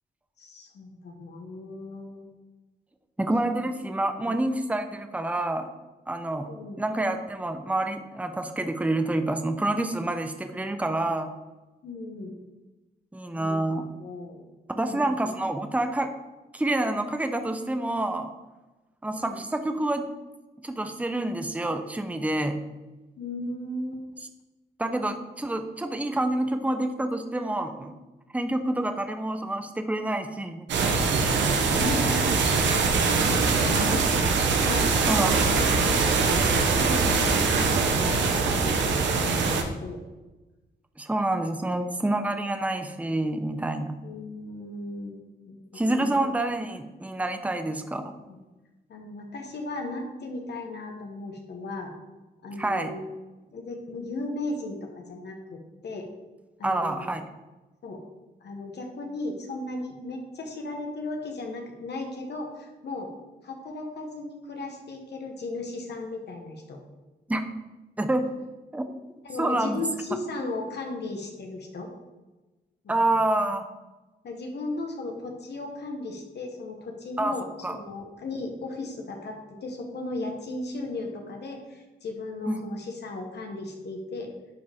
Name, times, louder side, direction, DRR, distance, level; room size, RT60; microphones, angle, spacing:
voice 1, 0.4-2.3 4.1-4.3 6.5-6.8 11.8-12.3 13.4-13.6 14.0-14.4 14.8-15.3 19.1-19.4 23.2-24.0 31.7-32.3 32.6-32.9 33.2-35.3 35.9-36.2 36.7-40.0 44.0-45.6 45.9-46.3 48.2-48.4 48.9-51.9 52.4-53.0 53.5-56.1 56.6-57.1 57.8-58.0 58.4-63.1 63.4-66.8 69.2-71.9 72.8-73.2 74.2-84.3, left 2 dB, 70° left, 2 dB, 1.4 m, -36 dB
voice 2, 3.2-5.7 6.1-6.5 6.8-11.3 13.1-13.9 14.7-16.1 16.5-18.3 19.0-20.1 20.6-22.6 24.8-27.9 28.3-31.0 35.1-35.7 41.0-43.9 45.7-48.1 52.6-52.9 56.6-57.2 67.3-67.4 68.0-68.3 68.7-68.8 69.4-69.8 70.4-70.5 72.9-73.7 77.2-77.4 77.6-77.8 82.5-82.6, right 1 dB, 10° right, 7 dB, 0.7 m, -28 dB
sound 1, 30.7-39.6, right 4 dB, 85° right, 1.0 m, -23 dB
10.5 x 5.0 x 3.6 m, 1.1 s
cardioid pair, 75°, 18 cm